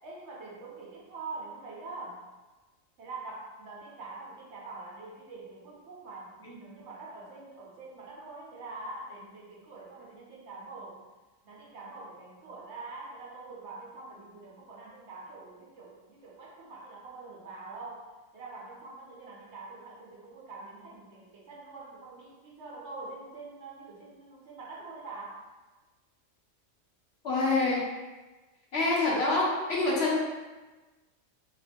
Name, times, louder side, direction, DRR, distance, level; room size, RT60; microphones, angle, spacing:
voice 1, 0.0-2.2 3.0-11.0 11.4-18.0 18.3-25.4, right 3 dB, 65° right, -4 dB, 0.9 m, -44 dB
voice 2, 27.2-27.9 28.7-30.2, left 2 dB, 65° left, -4 dB, 0.7 m, -26 dB
2.7 x 2.3 x 3.4 m, 1.2 s
omnidirectional pair, 1.4 m